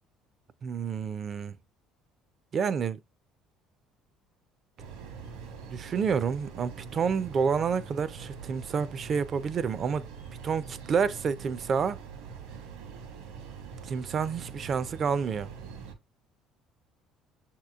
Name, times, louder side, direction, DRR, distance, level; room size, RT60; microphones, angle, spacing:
voice 1, 0.6-1.5 2.5-3.0 5.7-10.1 10.4-12.0 13.9-15.5, right 6 dB, 45° right, 0.4 m, -29 dB
sound 1, 4.8-16.0, right 6 dB, 80° right, 1.1 m, -44 dB
5.9 x 2.9 x 2.3 m
hypercardioid pair, 70°, 0 cm